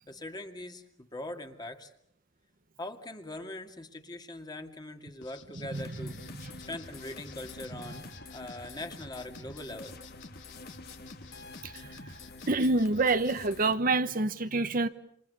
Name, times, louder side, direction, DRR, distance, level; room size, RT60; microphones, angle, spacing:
voice 1, 0.1-1.9 2.8-6.2 6.6-10.0, left 1 dB, 20° left, 2.3 m, -42 dB
sound 1, 5.2-13.3, left 5 dB, 80° left, 3.4 m, -53 dB
sound 2, 5.7-13.7, left 3 dB, 55° left, 2.0 m, -47 dB
voice 2, 11.6-12.1 12.5-14.9, right 3 dB, 50° right, 1.1 m, -27 dB
28.0 x 27.5 x 6.9 m
head